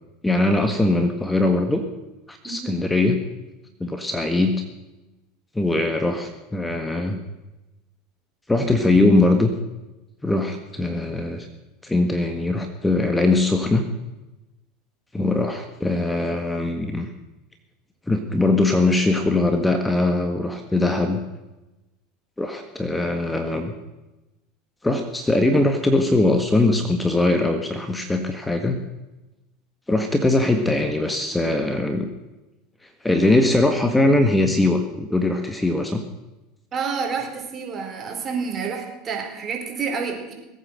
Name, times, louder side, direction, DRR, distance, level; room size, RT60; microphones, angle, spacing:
voice 1, 0.2-1.9 2.3-3.2 3.8-4.6 5.5-7.2 8.5-9.5 10.2-11.5 11.8-13.8 15.1-17.1 18.1-21.2 22.4-23.7 24.8-28.8 29.9-32.1 33.0-36.0, left 2 dB, 10° left, 6 dB, 1.6 m, -21 dB
voice 2, 2.4-2.8 36.7-40.3, right 5 dB, 35° right, 2 dB, 4.3 m, -29 dB
20.5 x 9.1 x 6.6 m, 1.0 s
hypercardioid pair, 85°, 0 cm